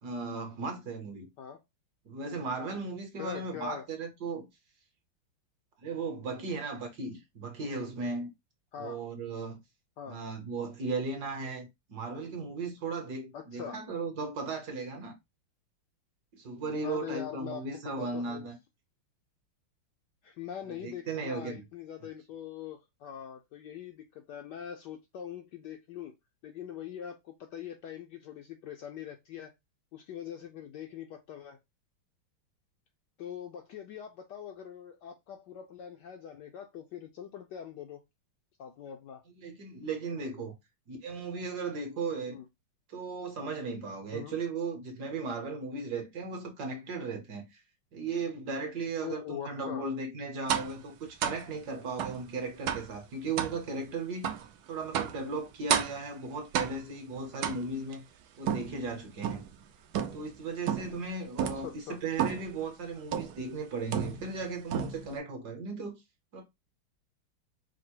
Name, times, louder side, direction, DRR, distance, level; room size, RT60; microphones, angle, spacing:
voice 1, 0.0-1.3 2.0-4.5 5.8-8.3 8.8-9.6 10.1-15.1 16.3-18.6 20.8-21.6 39.4-40.5 40.9-42.4 42.9-47.6 47.9-54.3 54.7-58.1 58.4-59.4 60.1-66.0 66.3-66.4, right 3 dB, 60° right, 1.3 m, -36 dB
voice 2, 3.2-3.8 8.7-9.0 10.0-10.2 13.3-13.8 16.8-18.5 20.2-26.1 26.4-29.5 29.9-31.6 33.2-38.0 38.6-39.2 42.3-42.4 44.1-44.3 49.0-49.9 61.5-62.0, left 9 dB, 75° left, 1.0 m, -42 dB
sound 1, 50.5-50.8 51.2-51.5 52.0-52.2 52.7-52.9 53.4-53.6 54.2-54.5 54.9-55.2 55.7-56.1 56.5-57.0 57.4-57.9 58.5-59.5 59.9-60.3 60.7-61.0 61.4-61.7 62.2-62.5 63.1-63.4 63.9-64.4 64.7-65.2, right 9 dB, 80° right, 0.8 m, -32 dB
4.9 x 2.0 x 4.4 m
omnidirectional pair, 2.3 m